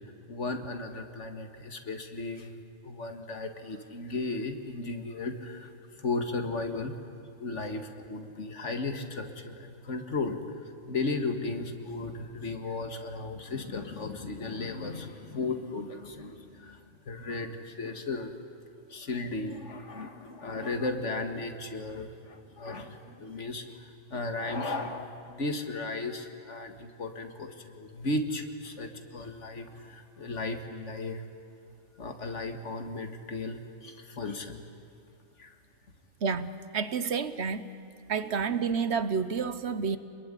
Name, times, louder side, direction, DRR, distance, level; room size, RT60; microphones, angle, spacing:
voice 1, 0.3-2.5 2.8-5.7 6.0-6.9 7.4-10.4 10.9-18.3 18.9-31.2 32.0-34.6 35.4-35.5, left 3 dB, 75° left, 6 dB, 2.1 m, -35 dB
voice 2, 36.2-37.6 38.1-40.0, right 6 dB, 65° right, 12 dB, 1.2 m, -29 dB
27.0 x 21.5 x 10.0 m, 2.4 s
omnidirectional pair, 1.2 m